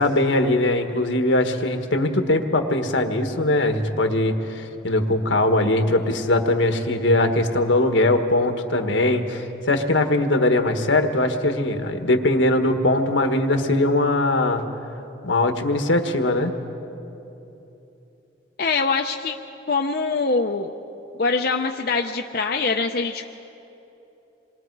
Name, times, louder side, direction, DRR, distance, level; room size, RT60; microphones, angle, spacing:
voice 1, 0.0-14.6 15.2-16.5, left 2 dB, 80° left, 6 dB, 1.4 m, -21 dB
voice 2, 18.6-19.3 19.7-20.7 21.2-23.2, left 4 dB, 50° left, 3 dB, 0.6 m, -23 dB
27.5 x 22.0 x 4.7 m, 3.0 s
head